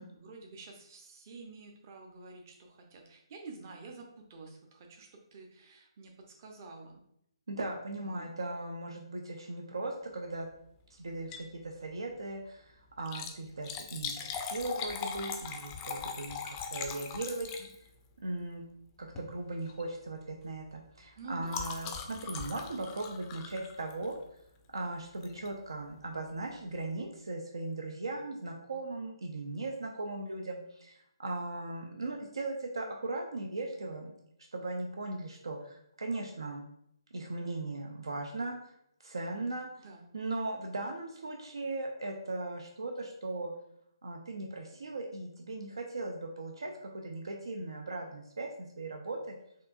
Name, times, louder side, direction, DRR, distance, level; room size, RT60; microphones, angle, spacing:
voice 1, 0.1-6.1 6.4-7.0 7.9-8.3 21.2-21.7 39.8-40.1, right 3 dB, 40° right, 2 dB, 0.8 m, -49 dB
voice 2, 7.5-10.5 11.0-17.8 18.2-18.7 19.0-24.2 24.7-34.1 34.5-36.7 37.1-38.6 39.0-39.9 40.1-43.5 44.0-48.5 48.8-49.3, right 2 dB, 70° right, 2 dB, 0.6 m, -38 dB
Liquid, 11.1-11.6 11.9-12.0 12.9-18.1 19.0-19.3 19.7-19.9 20.2-24.3 25.2-25.5 26.0-26.1 26.3-26.4, left 6 dB, 20° left, 0.4 m, -40 dB
4.3 x 3.0 x 2.5 m, 0.73 s
figure-of-eight pair, 140°, 3 cm